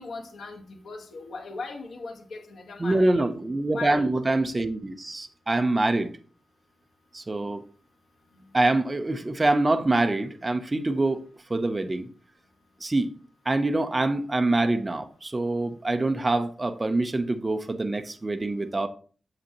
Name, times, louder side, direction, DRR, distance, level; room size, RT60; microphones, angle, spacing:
voice 1, 0.0-3.3 3.7-4.1, left 3 dB, 75° left, 1.3 m, -38 dB
voice 2, 2.8-6.1 7.1-7.6 8.5-11.2 11.5-12.1 12.8-13.1 13.5-18.9, right 2 dB, 20° right, 0.6 m, -25 dB
7.8 x 7.0 x 2.9 m
wide cardioid pair, 160°, 0 cm